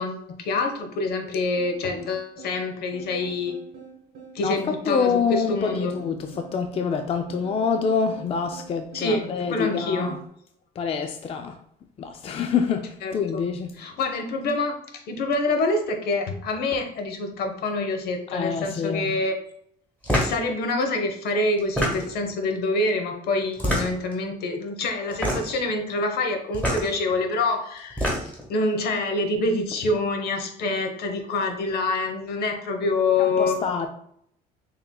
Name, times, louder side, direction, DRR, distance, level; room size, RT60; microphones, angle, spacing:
voice 1, 0.0-3.5 4.3-5.9 8.9-10.1 13.0-13.4 13.8-19.3 20.2-28.2 28.5-33.6, left 2 dB, 70° left, 0.9 m, -26 dB
sound 1, 1.6-10.3, right 5 dB, 90° right, 1.4 m, -45 dB
voice 2, 4.4-10.2 10.8-11.6 12.0-13.7 18.3-19.1 33.2-33.9, left 6 dB, 35° left, 0.4 m, -26 dB
sound 2, 20.0-20.4 21.6-22.3 23.5-24.1 25.1-25.6 26.5-26.9 27.8-28.5, equal, 10° left, 1.4 m, -25 dB
6.3 x 2.9 x 2.2 m
cardioid pair, 110°, 17 cm